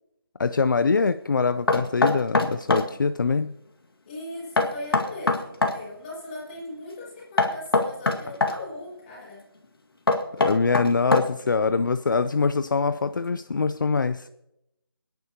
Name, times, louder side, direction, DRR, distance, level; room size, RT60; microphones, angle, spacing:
voice 1, 0.4-3.5 10.4-14.3, left 4 dB, 55° left, 0.5 m, -23 dB
Knock, 1.7-2.9 4.6-5.8 7.4-8.6 10.1-11.5, left 3 dB, 75° left, 1.9 m, -22 dB
voice 2, 4.1-9.4, left 2 dB, 20° left, 6.1 m, -39 dB
25.5 x 10.5 x 2.9 m
figure-of-eight pair, 165°, 12 cm